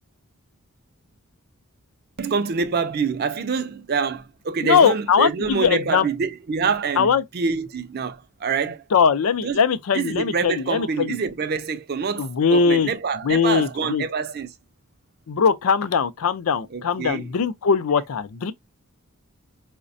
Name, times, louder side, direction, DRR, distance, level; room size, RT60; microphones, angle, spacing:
voice 1, 2.2-8.8 9.4-9.6 9.9-14.5 16.7-17.3, right 5 dB, 45° right, 0.4 m, -26 dB
voice 2, 4.6-6.1 7.0-7.2 8.9-11.2 12.2-12.9 13.2-14.0 15.3-18.5, left 6 dB, 75° left, 0.4 m, -20 dB
4.8 x 2.1 x 2.5 m
head